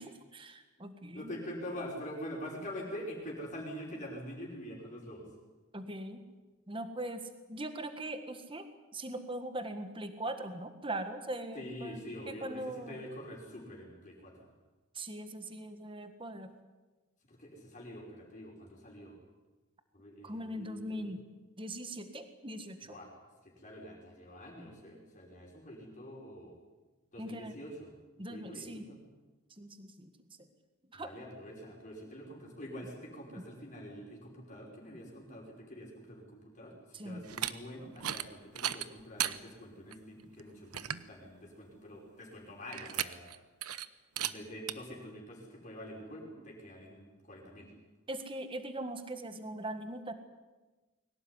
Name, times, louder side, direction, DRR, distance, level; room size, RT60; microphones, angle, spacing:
voice 1, 0.3-1.3 5.7-6.2 6.7-7.2 7.5-8.7 8.9-12.0 12.3-13.0 14.9-16.5 20.2-21.2 21.6-22.9 27.2-27.6 28.2-28.9 29.6-30.1 30.9-31.1 36.9-37.3 48.1-50.1, right 1 dB, 25° right, 8 dB, 1.7 m, -40 dB
voice 2, 1.1-5.3 11.5-14.5 17.3-19.2 19.9-21.1 22.9-23.1 23.4-26.6 27.1-27.9 28.2-29.0 30.9-43.3 44.2-47.7, equal, 35° left, -2 dB, 5.6 m, -45 dB
sound 1, 37.2-37.5 38.0-38.3 38.6-39.4 39.9-40.0 40.4-40.5 40.7-41.1 42.7-43.4 43.6-43.9 44.2-44.3 44.7-44.8, right 11 dB, 85° right, 1.0 m, -35 dB
22.5 x 18.0 x 9.8 m, 1.2 s
head